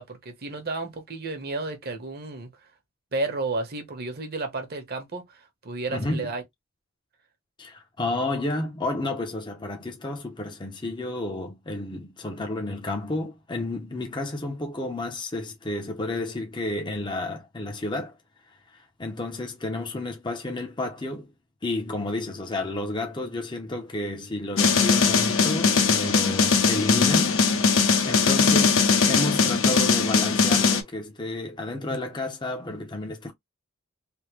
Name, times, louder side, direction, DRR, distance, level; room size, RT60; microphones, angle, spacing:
voice 1, 0.0-2.5 3.1-6.4, right 3 dB, 50° right, 1.0 m, -32 dB
voice 2, 5.9-6.3 7.6-18.2 18.7-21.3 21.6-27.4 28.1-28.8 29.1-33.3, left 2 dB, 20° left, 0.6 m, -31 dB
sound 1, 24.6-30.8, left 5 dB, 70° left, 0.9 m, -20 dB
3.4 x 2.1 x 3.1 m
head